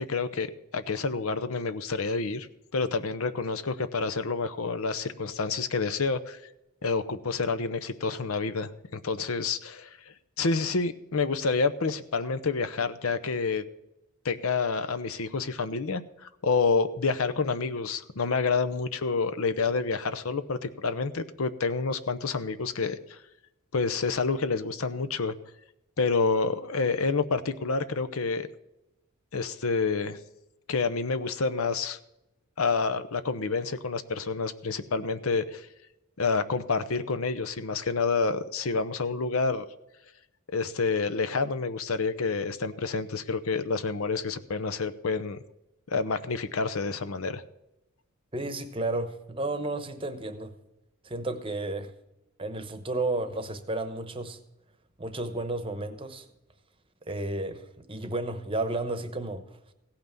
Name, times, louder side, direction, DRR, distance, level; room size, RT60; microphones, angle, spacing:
voice 1, 0.0-2.5 2.7-6.4 6.8-10.0 10.4-13.6 14.2-16.0 16.4-23.2 23.7-25.3 26.0-28.5 29.3-30.2 30.7-32.0 32.6-35.7 36.2-39.6 40.5-45.4 45.9-47.4, left 4 dB, 75° left, 0.7 m, -28 dB
voice 2, 48.3-50.5 51.0-51.9 52.4-54.4 55.0-56.3 57.1-59.4, right 2 dB, 25° right, 0.9 m, -32 dB
16.0 x 5.9 x 6.8 m
head